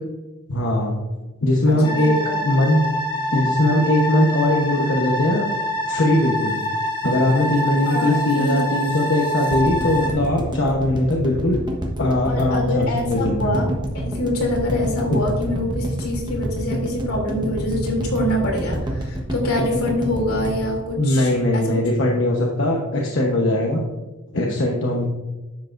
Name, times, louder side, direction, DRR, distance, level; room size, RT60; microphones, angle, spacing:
voice 1, 0.5-1.0 1.4-2.1 2.4-2.8 3.3-5.5 5.9-6.6 7.0-11.6 12.0-13.6 15.1-15.2 21.0-23.8 24.3-25.1, left 1 dB, 55° left, -1 dB, 1.1 m, -20 dB
voice 2, 1.7-2.4 7.9-8.6 12.3-13.7 13.9-21.7, left 1 dB, 75° left, -1 dB, 2.9 m, -25 dB
sound 1, 1.8-10.1, left 1 dB, 20° left, 1.3 m, -26 dB
sound 2, 9.5-21.7 22.0-22.1 22.3-22.4, equal, 20° right, 1.2 m, -27 dB
10.5 x 7.4 x 2.6 m, 1.1 s
head